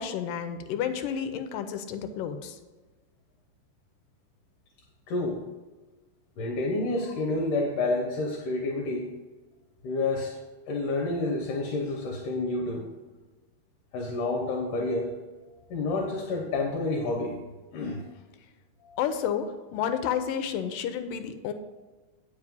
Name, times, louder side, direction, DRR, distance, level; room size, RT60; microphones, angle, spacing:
voice 1, 0.0-2.6 19.0-21.5, left 8 dB, 90° left, 8 dB, 2.3 m, -31 dB
voice 2, 5.1-5.4 6.4-9.2 9.8-10.4 10.7-12.9 13.9-15.1 15.7-17.4 17.7-18.0 18.8-19.0, left 2 dB, 70° left, 2 dB, 2.4 m, -29 dB
9.5 x 5.2 x 5.3 m, 1.3 s
omnidirectional pair, 3.9 m